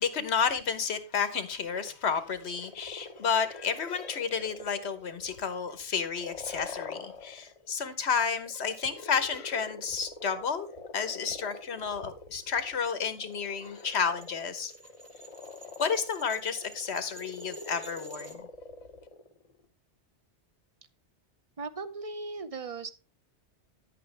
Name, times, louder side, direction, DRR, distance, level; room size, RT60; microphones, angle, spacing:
voice 1, 0.0-10.7 10.9-14.7 15.8-18.5, left 6 dB, 70° left, 1.3 m, -31 dB
sound 1, 1.7-7.7 8.3-19.7, left 3 dB, 35° left, 1.0 m, -46 dB
sound 2, 13.0-18.3, right 3 dB, 15° right, 1.1 m, -51 dB
voice 2, 21.6-22.9, right 4 dB, 35° right, 0.7 m, -37 dB
10.5 x 8.5 x 3.3 m
omnidirectional pair, 1.2 m